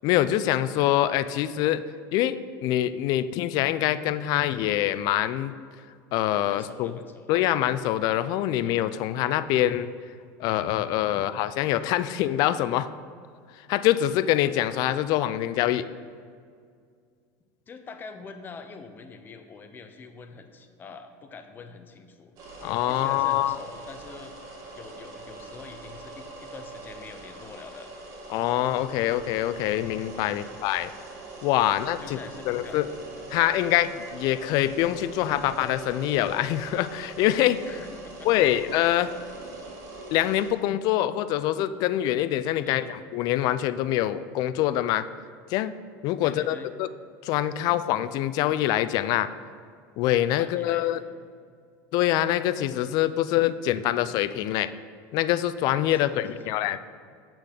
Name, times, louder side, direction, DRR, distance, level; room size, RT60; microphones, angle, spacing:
voice 1, 0.0-1.8 2.1-5.5 6.1-6.9 7.3-9.9 10.4-12.9 13.7-15.9 22.6-23.6 28.3-30.9 31.4-32.2 32.5-32.9 33.3-37.6 38.2-39.1 40.1-45.1 45.5-45.7 46.0-46.9 47.2-49.3 50.0-51.0 51.9-54.7 55.1-56.8, left 13 dB, 55° left, 14 dB, 0.4 m, -25 dB
voice 2, 6.5-7.3 17.7-27.9 30.2-30.6 31.7-32.8 37.6-38.6 42.6-42.9 46.2-46.7 50.4-50.9 55.9-56.6, left 4 dB, 25° left, 7 dB, 0.7 m, -45 dB
sound 1, 22.4-40.5, right 2 dB, 45° right, 2.2 m, -42 dB
8.3 x 6.1 x 5.0 m, 2.2 s
supercardioid pair, 135°, 8 cm